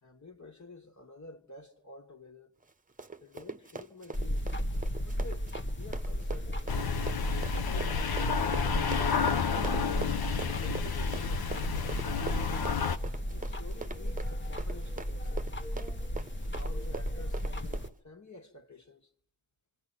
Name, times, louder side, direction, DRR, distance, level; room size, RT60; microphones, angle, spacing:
voice 1, 0.0-2.5 3.2-4.5 5.0-6.9 10.5-12.4 13.3-15.5 16.6-19.1, left 3 dB, 45° left, 2.2 m, -50 dB
Run, 2.6-17.9, right 4 dB, 20° right, 1.0 m, -43 dB
sound 1, 4.1-17.9, equal, 30° left, 1.3 m, -34 dB
sound 2, 6.7-13.0, left 7 dB, 65° left, 1.0 m, -31 dB
28.5 x 25.5 x 5.9 m
supercardioid pair, 40°, 40 cm